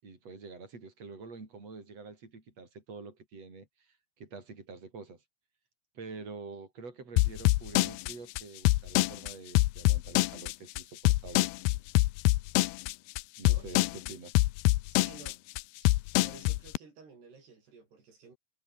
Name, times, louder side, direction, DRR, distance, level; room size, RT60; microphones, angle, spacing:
voice 1, 0.0-5.2 5.9-11.5 13.4-14.3, right 4 dB, 40° right, 7.9 m, -47 dB
sound 1, 7.2-16.8, left 20 dB, 85° left, 2.6 m, -25 dB
voice 2, 13.5-14.0 14.9-15.4 16.2-18.4, right 5 dB, 80° right, 8.6 m, -53 dB
omnidirectional pair, 4.6 m